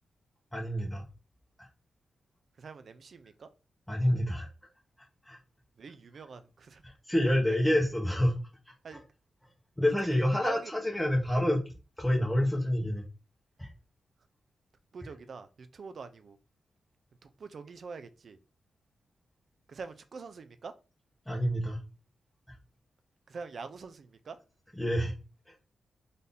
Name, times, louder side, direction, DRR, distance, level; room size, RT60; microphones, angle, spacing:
voice 1, 0.5-1.0 1.6-1.7 3.9-4.5 5.2-5.4 6.8-8.4 8.9-9.0 9.8-11.6 12.0-13.0 13.6-13.7 21.3-21.8 22.5-22.6 24.8-25.2 25.5-25.6, left 1 dB, 10° left, 0.9 m, -28 dB
voice 2, 2.6-3.5 5.8-6.8 7.5-7.6 8.8-9.0 10.1-10.7 14.9-16.4 17.2-18.4 19.7-20.7 23.3-24.4, right 5 dB, 60° right, 0.5 m, -45 dB
4.0 x 2.7 x 3.5 m
cardioid pair, 95°, 0 cm